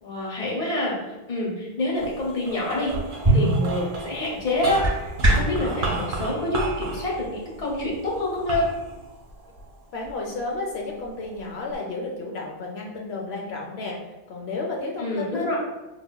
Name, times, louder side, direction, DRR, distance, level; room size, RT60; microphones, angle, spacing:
voice 1, 0.0-4.8 5.3-8.6 15.0-15.6, left 2 dB, 40° left, -4 dB, 0.9 m, -27 dB
sound 1, 2.0-10.4 11.0-11.8, right 3 dB, 60° right, 0.7 m, -33 dB
sound 2, 3.2-5.6, right 1 dB, 20° right, 0.7 m, -23 dB
voice 2, 9.9-14.0 14.3-15.5, left 3 dB, 80° left, -1 dB, 0.8 m, -32 dB
4.8 x 2.1 x 2.2 m, 1.0 s
omnidirectional pair, 1.1 m